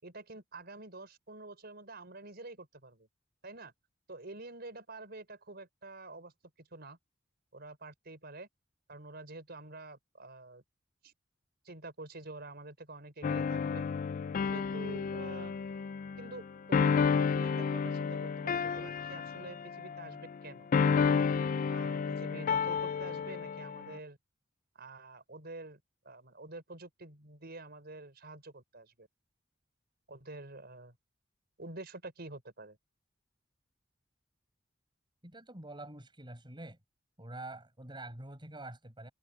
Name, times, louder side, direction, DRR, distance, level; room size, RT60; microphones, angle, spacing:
voice 1, 0.0-3.1 3.4-3.7 4.1-6.3 6.6-7.0 7.5-8.5 8.9-10.6 11.0-11.1 11.6-13.8 14.5-15.6 16.2-16.4 16.7-21.3 21.7-24.2 24.7-29.1 30.1-30.9 31.6-32.8, right 2 dB, 55° right, 5.1 m, -48 dB
sound 1, 13.2-20.4 20.7-24.0, left 6 dB, 45° left, 0.3 m, -31 dB
voice 2, 35.2-36.8 37.2-39.1, right 2 dB, 25° right, 5.0 m, -46 dB
head